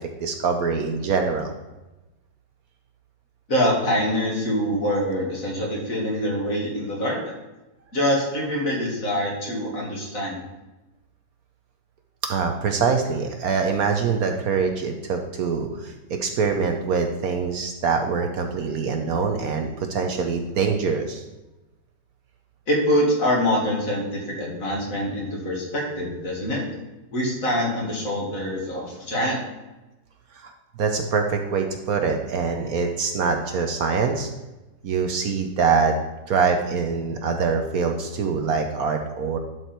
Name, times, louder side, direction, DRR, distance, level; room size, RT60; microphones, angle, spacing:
voice 1, 0.2-1.5 12.2-21.2 30.3-30.5 30.8-34.3 34.8-35.9 36.3-39.4, right 5 dB, 65° right, 5 dB, 1.2 m, -24 dB
voice 2, 3.5-7.3 7.9-10.4 22.7-26.6 27.1-29.4, equal, 50° left, -2 dB, 2.6 m, -24 dB
11.0 x 4.9 x 4.4 m, 1.0 s
omnidirectional pair, 1.9 m